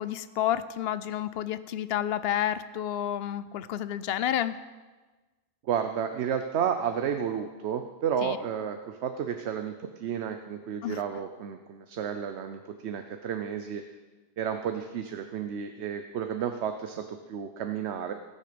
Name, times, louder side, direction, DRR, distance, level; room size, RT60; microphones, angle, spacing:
voice 1, 0.0-4.6 8.2-8.4 10.8-11.0, left 11 dB, 70° left, 14 dB, 0.8 m, -30 dB
voice 2, 5.6-13.8 14.4-18.1, right 8 dB, 85° right, 7 dB, 1.0 m, -32 dB
18.5 x 6.6 x 5.1 m, 1.3 s
omnidirectional pair, 1.1 m